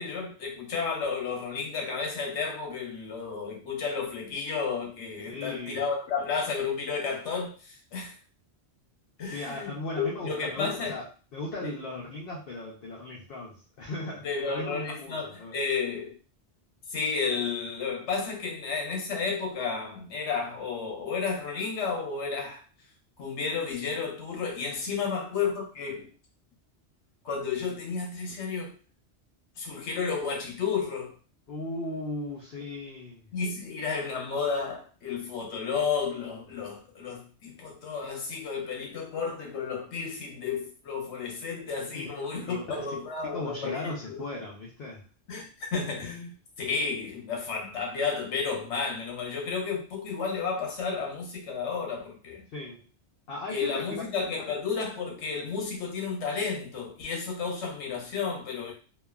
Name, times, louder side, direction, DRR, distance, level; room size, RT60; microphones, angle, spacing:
voice 1, 0.0-8.1 9.2-11.0 11.6-11.7 14.2-16.2 16.9-22.6 23.2-26.1 27.2-28.7 29.6-31.1 33.3-44.2 45.3-52.5 53.5-58.7, left 5 dB, 80° left, 0 dB, 1.1 m, -32 dB
voice 2, 5.3-5.8 9.2-11.1 11.3-15.5 24.9-25.1 31.5-33.3 41.9-43.0 43.2-45.0 52.5-52.8 53.3-54.4, left 2 dB, 60° left, -4 dB, 0.8 m, -37 dB
3.1 x 2.2 x 2.3 m, 0.37 s
omnidirectional pair, 1.2 m